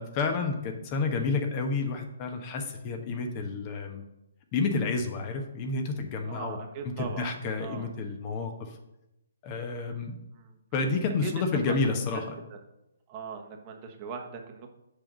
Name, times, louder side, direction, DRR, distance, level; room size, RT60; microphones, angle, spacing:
voice 1, 0.0-4.0 4.5-6.6 7.0-8.8 9.4-10.2 10.7-12.2, left 4 dB, 30° left, 4 dB, 1.2 m, -30 dB
voice 2, 6.2-7.3 7.6-7.9 9.8-10.6 11.2-11.8 12.4-12.6 13.1-14.7, right 5 dB, 30° right, 3 dB, 1.3 m, -40 dB
6.8 x 5.1 x 6.3 m, 0.91 s
figure-of-eight pair, 135°, 0 cm